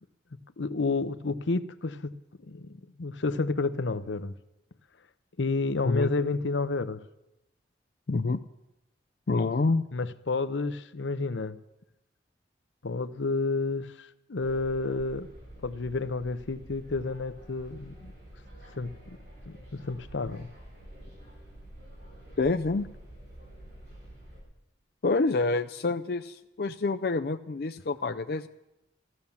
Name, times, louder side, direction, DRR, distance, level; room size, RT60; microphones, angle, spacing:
voice 1, 0.6-2.1 2.4-4.3 5.4-7.0 9.9-11.6 12.8-15.3 15.6-18.1 18.8-19.2 19.5-20.5, left 3 dB, 85° left, 13 dB, 0.8 m, -30 dB
voice 2, 8.1-8.4 9.3-9.8 22.4-22.9 25.0-28.5, left 3 dB, 55° left, 9 dB, 0.4 m, -27 dB
sound 1, 14.4-24.4, right 1 dB, 70° right, 7.9 m, -48 dB
14.5 x 13.0 x 7.1 m, 0.92 s
head